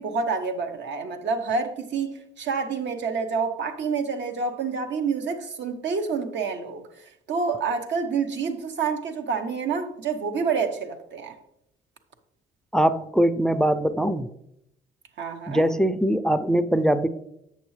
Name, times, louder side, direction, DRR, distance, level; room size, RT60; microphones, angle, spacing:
voice 1, 0.0-11.4 15.2-15.7, right 5 dB, 65° right, 0.9 m, -28 dB
voice 2, 12.7-14.3 15.5-17.1, equal, 5° left, 0.4 m, -22 dB
8.2 x 6.4 x 3.2 m
cardioid pair, 90°, 20 cm